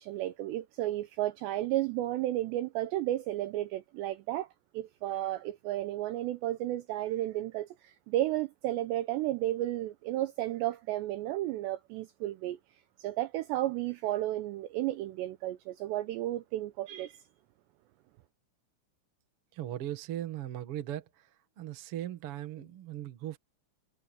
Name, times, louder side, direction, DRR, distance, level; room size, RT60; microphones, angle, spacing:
voice 1, 0.0-4.5 4.7-12.6 13.0-17.2, right 15 dB, 85° right, 2.5 m, -33 dB
voice 2, 19.5-21.3 21.6-23.4, right 12 dB, 70° right, 1.3 m, -38 dB
omnidirectional pair, 5.8 m